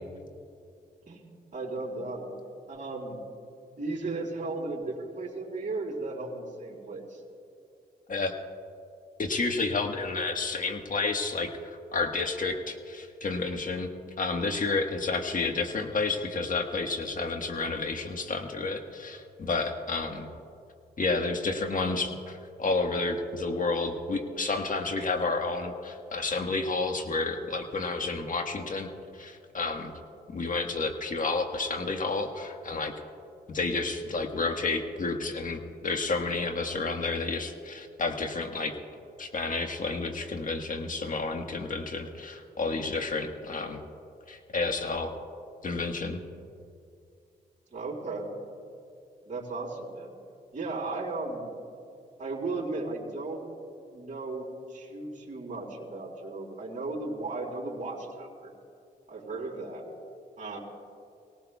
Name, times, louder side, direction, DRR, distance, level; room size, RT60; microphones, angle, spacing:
voice 1, 1.1-2.3 2.7-3.2 3.8-7.2 47.7-48.3 49.3-50.1 50.5-51.5 52.2-53.4 53.9-58.5 59.1-59.8 60.4-60.6, right 3 dB, 45° right, -6 dB, 3.5 m, -35 dB
voice 2, 9.2-13.9 14.2-20.3 21.0-29.9 30.3-32.9 33.5-38.7 39.2-43.8 44.3-45.1 45.6-46.2, left 3 dB, 50° left, 4 dB, 1.5 m, -30 dB
23.5 x 18.0 x 2.4 m, 2.4 s
cardioid pair, 65°, 18 cm